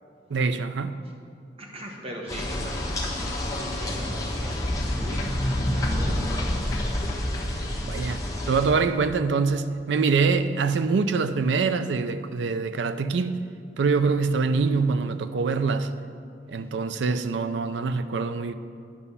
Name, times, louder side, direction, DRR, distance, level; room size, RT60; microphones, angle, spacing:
voice 1, 0.3-1.0 7.8-13.4 13.8-15.9 16.5-18.5, right 4 dB, 90° right, 0.4 m, -24 dB
voice 2, 1.6-6.8, equal, 35° right, 1.3 m, -40 dB
sound 1, 2.3-8.7, left 1 dB, 20° left, 1.3 m, -28 dB
10.0 x 5.6 x 5.5 m
head